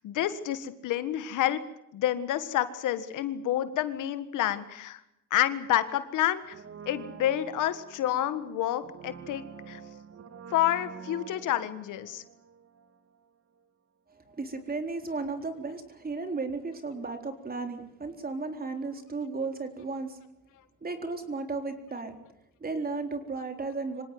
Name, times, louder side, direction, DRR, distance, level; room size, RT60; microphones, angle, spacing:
voice 1, 0.0-1.6 1.9-5.0 5.3-6.5 6.9-9.8 10.5-12.2, left 12 dB, 85° left, 12 dB, 1.7 m, -29 dB
Brass instrument, 6.4-13.3 13.6-13.7, right 6 dB, 50° right, 1.9 m, -47 dB
voice 2, 14.1-20.2 20.8-22.1 22.6-24.0, right 3 dB, 30° right, 5 dB, 4.1 m, -34 dB
25.5 x 17.5 x 9.4 m, 0.84 s
cardioid pair, 90°, 30 cm